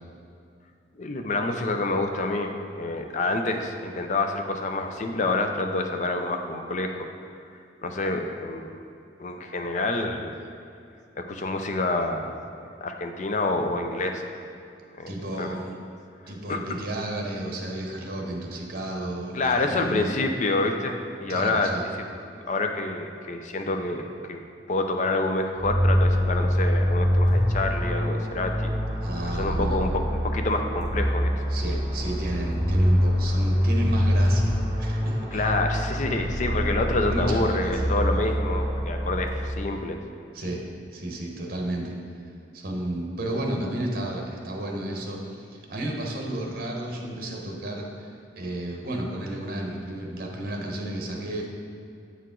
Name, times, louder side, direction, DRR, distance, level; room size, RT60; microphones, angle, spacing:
voice 1, 0.9-7.1 7.8-8.8 9.2-10.3 11.2-14.3 15.0-15.6 16.5-16.6 19.3-21.7 22.5-24.4 24.7-28.7 29.3-31.3 35.3-40.0, left 2 dB, 45° left, 5 dB, 0.5 m, -27 dB
voice 2, 15.1-15.8 16.3-20.1 21.3-21.8 29.0-29.8 31.5-35.5 37.0-37.9 40.3-40.6 40.9-42.0 42.5-51.5, right 1 dB, 55° right, 0 dB, 1.0 m, -32 dB
sound 1, 25.6-39.7, equal, 20° right, 1.5 m, -25 dB
8.1 x 4.7 x 3.8 m, 2.5 s
head